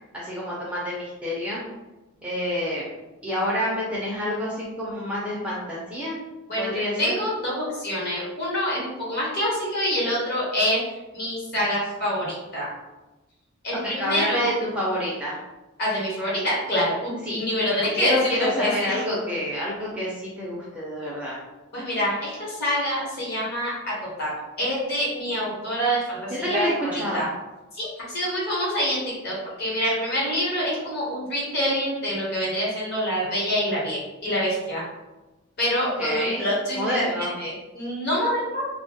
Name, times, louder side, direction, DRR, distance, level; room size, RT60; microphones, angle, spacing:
voice 1, 0.1-1.6 2.2-2.9 3.2-6.2 6.6-7.1 13.7-15.4 17.3-17.5 18.0-21.4 26.3-27.2 36.0-36.5 36.7-37.4, equal, 5° right, -6 dB, 0.4 m, -28 dB
voice 2, 6.5-10.8 11.1-12.7 13.6-14.5 15.8-19.0 21.7-23.9 24.2-24.3 24.6-27.3 27.7-34.8 35.6-38.7, equal, 50° left, -6 dB, 0.9 m, -26 dB
2.1 x 2.1 x 2.7 m, 1.1 s
head